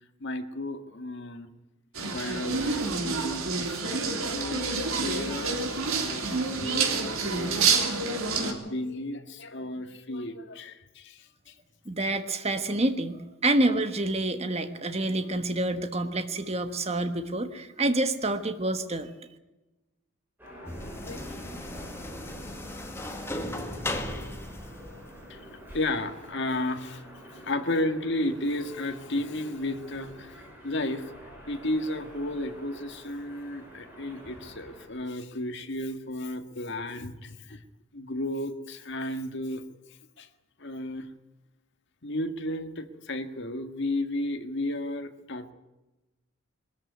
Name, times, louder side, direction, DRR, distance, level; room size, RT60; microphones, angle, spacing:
voice 1, 0.2-1.5 2.0-7.7 8.3-11.5 20.5-21.2 25.3-25.4 25.7-27.0 27.3-31.1 31.5-37.6 37.9-39.6 40.2-40.3 40.6-41.1 42.0-45.5, left 1 dB, 55° left, 7 dB, 1.9 m, -33 dB
sound 1, 1.9-8.5, right 4 dB, 75° right, 3.5 m, -28 dB
voice 2, 11.8-19.1, right 2 dB, 30° right, 8 dB, 1.4 m, -28 dB
sound 2, 20.4-34.9, equal, 10° right, 7.1 m, -48 dB
sound 3, 20.7-25.8, left 1 dB, 10° left, 2.0 m, -37 dB
22.5 x 14.0 x 9.5 m, 1.0 s
head